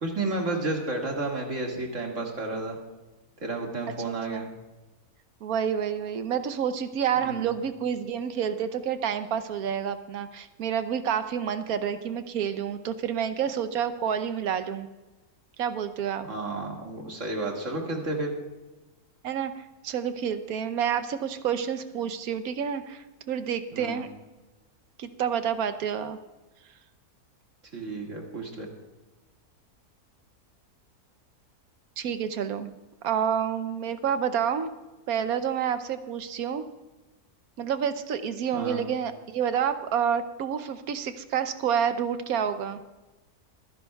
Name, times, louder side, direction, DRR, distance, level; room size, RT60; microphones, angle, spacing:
voice 1, 0.0-2.8 3.4-4.5 7.2-7.5 16.3-18.3 23.7-24.1 27.7-28.7 38.5-38.8, right 2 dB, 55° right, 0 dB, 2.4 m, -31 dB
voice 2, 5.4-14.9 15.6-16.3 19.2-19.5 19.8-24.1 25.0-26.2 32.0-32.7 33.0-34.7 35.1-36.6 37.6-42.8, right 8 dB, 75° right, 10 dB, 1.2 m, -29 dB
24.5 x 10.5 x 2.3 m, 1.1 s
omnidirectional pair, 1.6 m